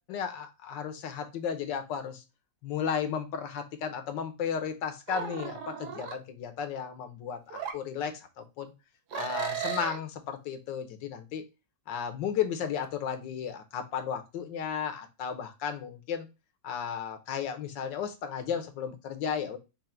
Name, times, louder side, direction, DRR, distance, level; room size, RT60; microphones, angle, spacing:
voice 1, 0.1-2.2 2.6-8.7 9.1-11.5 11.9-16.3 16.6-19.6, left 7 dB, 70° left, 8 dB, 1.4 m, -34 dB
sound 1, 5.1-6.1 7.5-7.8 9.1-10.0, right 8 dB, 65° right, 1.2 m, -35 dB
5.6 x 2.6 x 3.7 m, 0.26 s
omnidirectional pair, 2.1 m